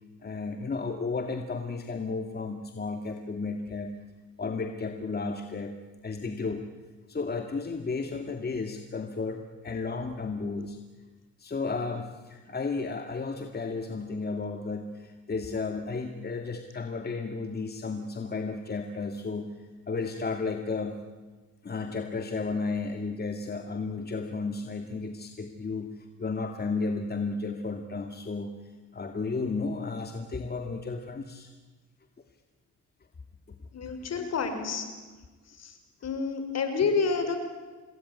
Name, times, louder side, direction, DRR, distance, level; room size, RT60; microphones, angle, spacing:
voice 1, 0.2-3.9 4.4-5.8 6.0-6.7 7.1-10.8 11.4-21.0 21.6-28.5 28.9-31.5 33.5-33.6, left 4 dB, 30° left, 5 dB, 2.2 m, -33 dB
voice 2, 33.7-34.8 35.6-35.8 36.0-37.4, left 5 dB, 55° left, 7 dB, 5.4 m, -29 dB
27.0 x 20.5 x 9.7 m, 1.3 s
cardioid pair, 90°, 30 cm